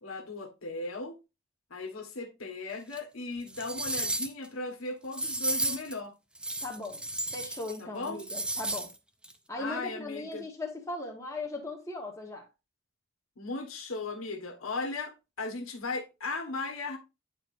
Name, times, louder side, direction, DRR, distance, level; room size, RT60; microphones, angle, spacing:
voice 1, 0.0-1.2 1.7-6.1 7.8-8.2 9.6-10.5 13.4-17.0, left 3 dB, 85° left, 1.5 m, -37 dB
sound 1, 2.9-3.0 3.5-4.5 5.1-5.9 6.4-7.8 8.0-8.9 9.2-9.3, right 1 dB, 5° right, 0.5 m, -33 dB
voice 2, 6.6-7.0 7.3-8.9 9.5-12.5, left 2 dB, 15° left, 1.4 m, -38 dB
9.4 x 4.5 x 2.6 m
head